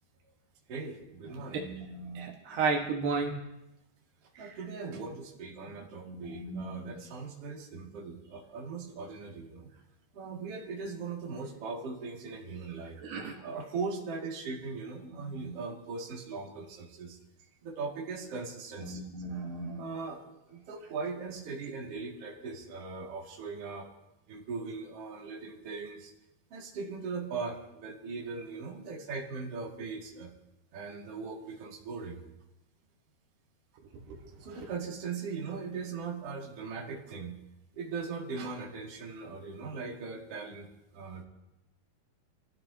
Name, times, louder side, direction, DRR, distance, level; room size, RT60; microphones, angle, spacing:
voice 1, 0.7-1.7 4.4-9.7 10.1-13.0 13.4-17.2 17.6-19.0 19.8-23.9 24.3-26.1 26.5-30.3 30.7-32.2 34.4-37.4 37.7-40.7 40.9-41.2, right 4 dB, 40° right, -3 dB, 2.8 m, -39 dB
voice 2, 1.5-3.4 4.4-4.6 6.1-7.0 10.3-10.4 13.0-13.4 15.3-15.6 18.8-19.9 34.1-34.2, right 4 dB, 75° right, 0 dB, 3.5 m, -34 dB
26.0 x 14.5 x 2.8 m, 0.91 s
omnidirectional pair, 4.8 m